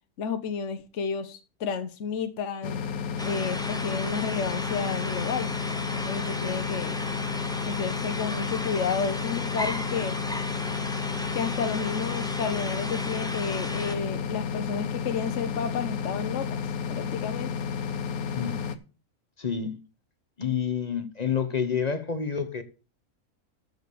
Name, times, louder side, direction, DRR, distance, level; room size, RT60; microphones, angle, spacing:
voice 1, 0.2-2.8 3.2-5.5 5.9-7.0 7.7-10.2 11.3-16.6 16.9-17.5, left 6 dB, 55° left, 1.2 m, -31 dB
sound 1, 2.6-18.8, left 6 dB, 75° left, 1.3 m, -32 dB
sound 2, 3.2-14.0, left 1 dB, 5° left, 0.5 m, -35 dB
voice 2, 18.3-18.7 19.4-19.8 20.4-22.6, left 7 dB, 30° left, 1.0 m, -29 dB
13.5 x 4.9 x 6.8 m
omnidirectional pair, 1.5 m